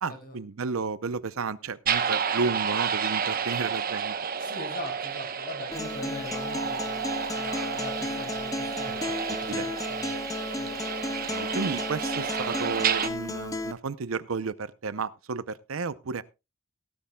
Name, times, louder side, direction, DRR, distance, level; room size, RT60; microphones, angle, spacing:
voice 1, 0.0-4.1 8.9-9.0 9.3-9.7 11.3-16.2, right 4 dB, 75° right, 16 dB, 0.6 m, -32 dB
sound 1, 1.9-13.1, right 7 dB, 45° right, 0.9 m, -31 dB
voice 2, 4.4-10.2 10.5-10.8, left 2 dB, 45° left, 3 dB, 4.9 m, -42 dB
Acoustic guitar, 5.7-13.7, left 2 dB, 15° left, 0.6 m, -34 dB
17.0 x 13.0 x 2.3 m, 0.26 s
head